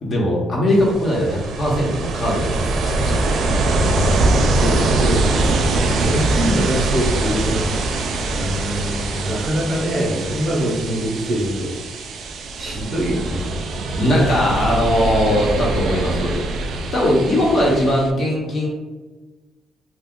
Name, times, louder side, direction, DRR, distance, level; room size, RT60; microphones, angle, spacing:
voice 1, 0.0-3.3 13.9-16.3 16.9-18.7, equal, 50° left, -3 dB, 0.9 m, -19 dB
Ocean, 0.7-18.1, right 2 dB, 70° right, 0.3 m, -22 dB
voice 2, 3.9-5.3 5.9-7.8 8.3-11.8 12.6-13.5, right 1 dB, 40° right, -1 dB, 0.7 m, -24 dB
2.4 x 2.2 x 3.6 m, 1.3 s
cardioid pair, 90°, 0 cm